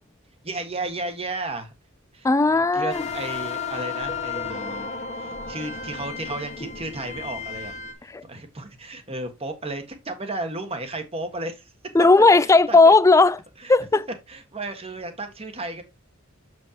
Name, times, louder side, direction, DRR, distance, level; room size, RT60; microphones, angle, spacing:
voice 1, 0.4-1.7 2.1-7.7 8.0-11.7 12.4-12.9 13.6-13.7 14.3-15.8, right 2 dB, 30° right, 1.4 m, -34 dB
voice 2, 2.2-3.0 8.1-8.2 11.9-13.4 13.7-14.0, left 3 dB, 15° left, 0.3 m, -16 dB
sound 1, 2.9-7.9, left 5 dB, 35° left, 1.2 m, -33 dB
7.1 x 6.3 x 2.8 m
head